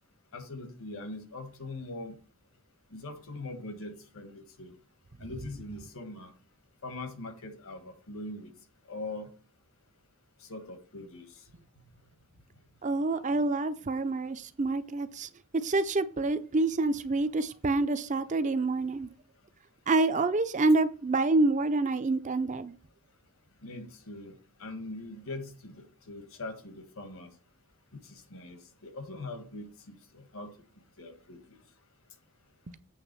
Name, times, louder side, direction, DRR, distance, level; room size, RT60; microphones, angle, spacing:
voice 1, 0.3-2.2 2.9-4.7 5.2-6.3 6.8-8.5 8.9-9.3 10.4-11.3 23.6-27.3 27.9-30.5 31.0-31.6, left 2 dB, 70° left, 1.4 m, -42 dB
voice 2, 12.8-19.1 19.9-22.7 32.7-32.8, right 2 dB, 35° right, 0.5 m, -27 dB
8.1 x 3.5 x 6.6 m
head